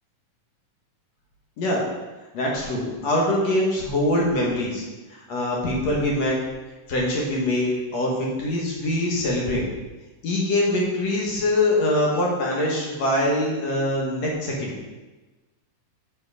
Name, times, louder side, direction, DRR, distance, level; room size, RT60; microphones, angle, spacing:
voice 1, 2.3-4.8 5.1-6.4 6.9-9.6 10.2-14.7, left 1 dB, 60° left, -3 dB, 2.3 m, -23 dB
7.0 x 6.3 x 4.8 m, 1.2 s
omnidirectional pair, 3.9 m